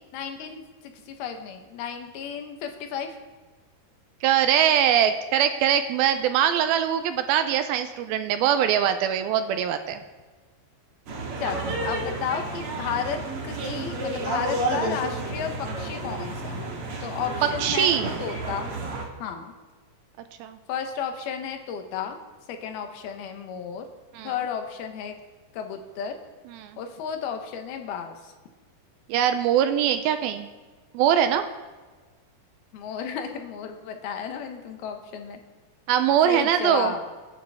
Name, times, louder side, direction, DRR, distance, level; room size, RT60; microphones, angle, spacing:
voice 1, 0.1-3.2 11.4-16.7 17.0-18.7 19.2-19.5 20.7-22.2 22.5-23.9 24.2-25.2 25.5-26.1 26.8-28.3 32.7-35.4 36.3-37.0, left 7 dB, 75° left, 5 dB, 3.0 m, -33 dB
voice 2, 4.2-10.0 17.6-18.1 20.4-20.6 24.2-24.3 26.5-26.8 29.1-30.5 30.9-31.4 35.9-36.9, right 9 dB, 80° right, 9 dB, 2.4 m, -22 dB
sound 1, 11.1-19.0, right 2 dB, 50° right, 2.0 m, -31 dB
23.0 x 9.7 x 3.5 m, 1.3 s
omnidirectional pair, 4.6 m